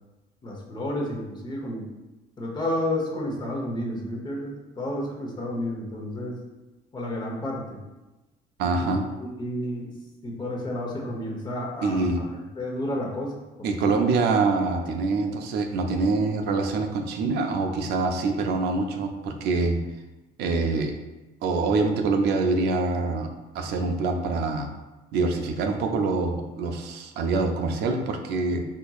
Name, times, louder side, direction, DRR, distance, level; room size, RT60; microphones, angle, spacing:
voice 1, 0.4-1.9 2.4-6.4 6.9-7.8 8.6-9.9 10.2-12.2 12.6-13.3 13.6-14.0, left 1 dB, 25° left, -2 dB, 0.8 m, -31 dB
voice 2, 8.6-9.0 11.8-12.2 13.6-19.8 20.4-21.0 21.4-23.3 23.5-24.7 25.1-28.6, right 3 dB, 75° right, 4 dB, 0.5 m, -25 dB
4.3 x 2.8 x 2.3 m, 1.1 s
cardioid pair, 110°, 17 cm